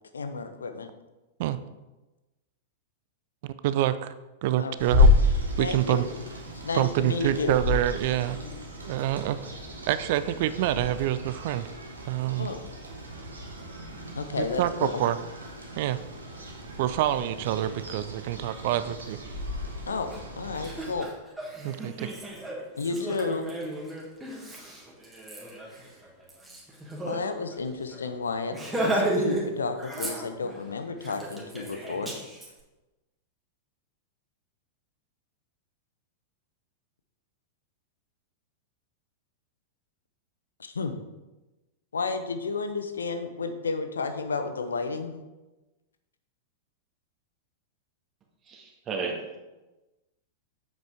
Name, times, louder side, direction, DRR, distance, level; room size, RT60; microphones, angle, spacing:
voice 1, 0.1-0.9 4.6-4.8 5.6-6.1 6.6-7.6 12.4-12.6 14.2-15.0 19.9-20.1 20.4-21.1 22.8-23.6 27.0-32.1 40.6-41.0 41.9-45.2, left 4 dB, 70° left, 8 dB, 0.8 m, -32 dB
voice 2, 3.4-4.1 4.4-5.1 5.6-6.0 6.7-8.4 8.8-9.4 9.9-11.7 12.0-12.5 14.4-15.2 15.8-16.0 16.8-19.2 21.6-22.1, right 13 dB, 50° right, 14 dB, 0.5 m, -27 dB
sound 1, 4.8-21.0, left 2 dB, 75° right, 1.5 m, -30 dB
Laughter, 20.1-20.2 20.5-27.2 27.5-27.6 27.9-28.1 28.5-29.5 29.8-30.6 31.0-32.5, right 1 dB, 5° right, 1.9 m, -33 dB
voice 3, 48.5-49.4, right 4 dB, 25° right, 1 dB, 1.7 m, -34 dB
7.8 x 7.5 x 3.6 m, 1.1 s
figure-of-eight pair, 95°, 0 cm